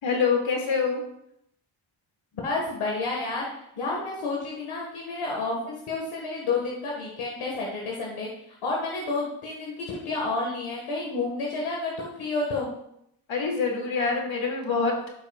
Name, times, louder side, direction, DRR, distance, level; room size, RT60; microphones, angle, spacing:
voice 1, 0.0-1.0 13.3-15.1, left 5 dB, 65° left, 0 dB, 2.5 m, -25 dB
voice 2, 2.4-12.7, left 3 dB, 90° left, -2 dB, 1.8 m, -30 dB
13.5 x 6.0 x 2.4 m, 0.76 s
cardioid pair, 70°, 49 cm